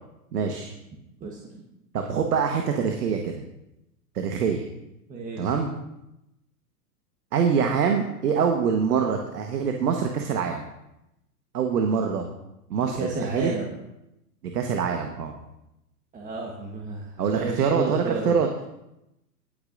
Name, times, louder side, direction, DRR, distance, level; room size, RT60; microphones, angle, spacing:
voice 1, 0.3-0.7 1.9-3.4 4.1-4.6 5.4-5.7 7.3-10.6 11.5-12.2 12.7-13.5 14.5-15.3 17.2-18.5, right 6 dB, 70° right, 3 dB, 1.4 m, -24 dB
voice 2, 1.2-1.6 5.1-5.5 12.8-13.8 16.1-18.4, right 3 dB, 15° right, -1 dB, 1.2 m, -32 dB
20.0 x 8.7 x 2.6 m, 0.88 s
hypercardioid pair, 125°, 48 cm